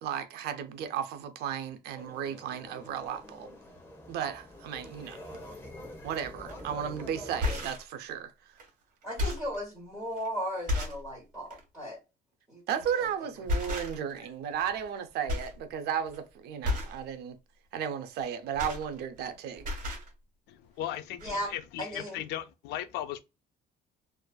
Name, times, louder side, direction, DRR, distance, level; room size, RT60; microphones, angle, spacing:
voice 1, 0.0-3.6 4.1-5.3 6.0-8.3 12.7-17.4 17.7-19.6, right 8 dB, 75° right, 0.5 m, -34 dB
sound 1, 1.9-7.6, left 1 dB, 15° left, 0.8 m, -45 dB
sound 2, 6.5-6.7 7.2-7.9 8.6-8.7 9.0-9.6 10.2-10.3 10.7-11.1 11.5-11.6 12.8-13.0 13.5-14.2 14.5-15.0 15.3-15.6 15.9-16.2 16.6-17.0 18.2-19.3 19.6-20.1 20.9-21.0 21.2-21.3, left 2 dB, 55° right, 1.1 m, -33 dB
voice 2, 9.0-12.0 12.5-12.6 13.6-13.8 21.2-22.2, equal, 5° right, 1.5 m, -36 dB
voice 3, 20.5-23.2, left 12 dB, 80° left, 0.4 m, -37 dB
2.4 x 2.4 x 2.2 m
cardioid pair, 110°, 17 cm